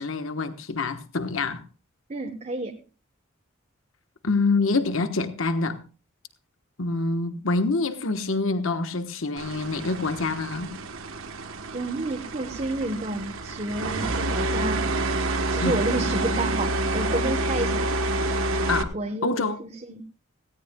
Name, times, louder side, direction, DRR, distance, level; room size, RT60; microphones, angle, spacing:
voice 1, 0.0-1.6 4.2-5.8 6.8-10.8 15.6-15.8 18.7-18.9 19.2-19.6, left 3 dB, 75° left, 1.3 m, -26 dB
voice 2, 2.1-2.8 11.7-14.9 15.5-17.9 18.9-20.0, right 2 dB, 35° right, 1.1 m, -30 dB
sound 1, 9.4-18.8, right 2 dB, 75° right, 1.3 m, -28 dB
18.0 x 16.5 x 2.3 m
head